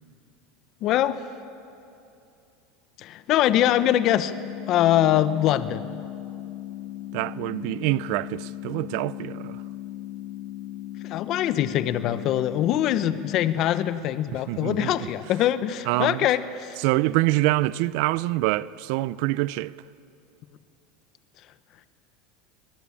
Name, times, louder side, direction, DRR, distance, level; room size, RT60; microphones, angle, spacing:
voice 1, 0.8-1.2 3.0-4.3 4.7-5.9 11.0-16.7, left 12 dB, 50° left, 1.0 m, -23 dB
sound 1, 3.5-13.5, left 13 dB, 70° left, 1.7 m, -37 dB
voice 2, 7.1-9.6 14.5-15.1 15.9-16.3 16.8-19.7, right 19 dB, 65° right, 0.5 m, -25 dB
22.5 x 20.0 x 8.7 m
supercardioid pair, 125°, 0 cm